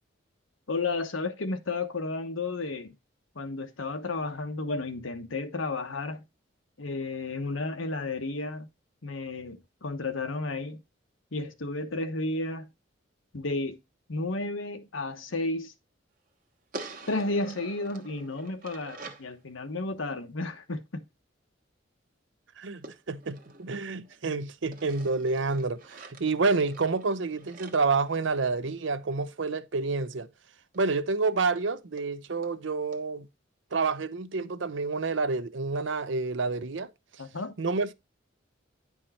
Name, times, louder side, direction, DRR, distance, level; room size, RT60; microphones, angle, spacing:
voice 1, 0.7-2.9 3.3-6.3 6.8-8.7 9.0-10.8 11.3-12.7 13.3-13.8 14.1-15.7 17.1-21.1 37.2-37.6, left 2 dB, 90° left, 1.2 m, -32 dB
sound 1, 16.7-19.3 22.8-24.2 24.7-28.8 30.7-30.8 31.1-31.2 31.6-31.7 32.0-32.1 32.4-32.6 32.9-33.0, right 3 dB, 45° right, 1.1 m, -46 dB
voice 2, 22.6-30.3 30.7-33.3 33.7-36.9 37.6-37.9, right 4 dB, 70° right, 0.6 m, -29 dB
10.0 x 4.6 x 4.2 m
head